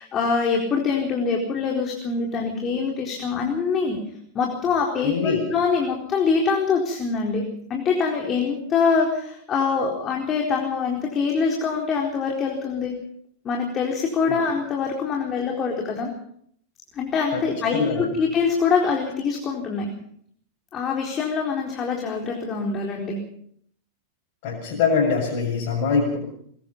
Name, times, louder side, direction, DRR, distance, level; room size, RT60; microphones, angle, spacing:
voice 1, 0.0-4.0 4.3-7.4 7.7-12.9 13.4-16.1 16.9-19.9 20.7-23.2, left 5 dB, 25° left, 0 dB, 4.2 m, -24 dB
voice 2, 5.0-5.4 14.3-14.4 17.3-17.4 17.7-18.1 24.4-26.2, left 5 dB, 50° left, -3 dB, 7.1 m, -23 dB
22.5 x 21.0 x 5.4 m, 0.65 s
figure-of-eight pair, 90°, 0 cm